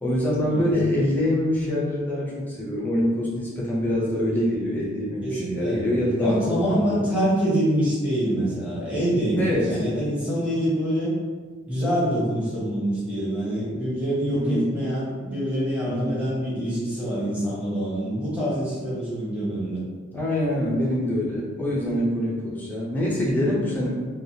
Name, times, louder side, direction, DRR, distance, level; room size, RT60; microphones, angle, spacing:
voice 1, 0.0-7.0 9.4-9.8 14.3-14.7 15.9-16.2 20.1-23.9, left 1 dB, 10° left, -5 dB, 0.5 m, -25 dB
voice 2, 5.2-5.9 6.2-11.1 11.7-19.8, equal, 5° right, -9 dB, 0.9 m, -25 dB
3.2 x 2.2 x 2.7 m, 1.5 s
head